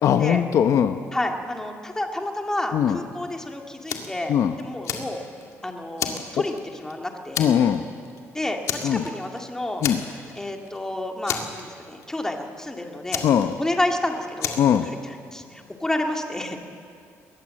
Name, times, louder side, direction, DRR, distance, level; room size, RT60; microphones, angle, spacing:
voice 1, 0.0-0.9 2.7-3.0 4.3-4.5 7.4-7.8 8.8-9.0 9.8-10.0 13.2-13.5 14.6-14.8, left 9 dB, 65° left, 8 dB, 0.9 m, -20 dB
voice 2, 1.1-5.2 5.6-7.5 8.3-9.8 10.4-13.2 13.6-14.5 14.8-15.4 15.8-16.6, left 1 dB, 10° left, 3 dB, 2.0 m, -30 dB
Fire, 3.9-4.2 4.6-5.5 6.0-6.9 7.3-7.8 8.0-8.2 8.6-9.4 9.8-10.4 10.7-10.8 11.3-12.1 13.1-13.9 14.4-14.8, left 8 dB, 80° left, 2.2 m, -30 dB
21.5 x 19.0 x 7.6 m, 2.3 s
cardioid pair, 135°, 5 cm